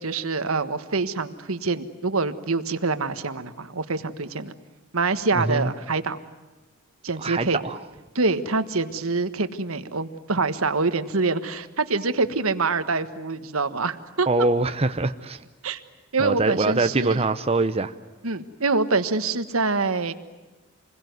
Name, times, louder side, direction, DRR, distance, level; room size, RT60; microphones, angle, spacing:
voice 1, 0.0-4.5 4.9-6.2 7.0-7.6 8.1-14.3 15.6-15.8 16.1-17.2 18.2-20.1, right 3 dB, 80° right, 11 dB, 1.5 m, -25 dB
voice 2, 5.3-5.7 7.2-7.8 14.3-15.5 16.2-17.9, right 3 dB, 30° right, 9 dB, 0.8 m, -24 dB
27.5 x 21.5 x 9.5 m, 1.2 s
head